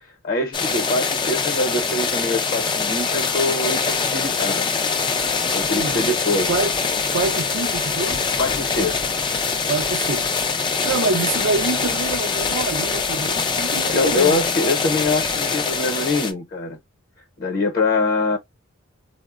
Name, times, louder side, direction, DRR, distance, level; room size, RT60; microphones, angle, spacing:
voice 1, 0.2-4.7 5.5-6.5 8.4-9.0 11.0-11.1 13.9-16.8 17.4-18.4, left 2 dB, 45° left, 0.8 m, -23 dB
sound 1, 0.5-16.3, left 5 dB, 25° left, 0.4 m, -23 dB
voice 2, 5.7-6.2 6.5-6.7 7.1-8.2 9.7-10.3 10.8-14.4, right 3 dB, 70° right, 0.5 m, -26 dB
3.6 x 2.1 x 2.4 m
head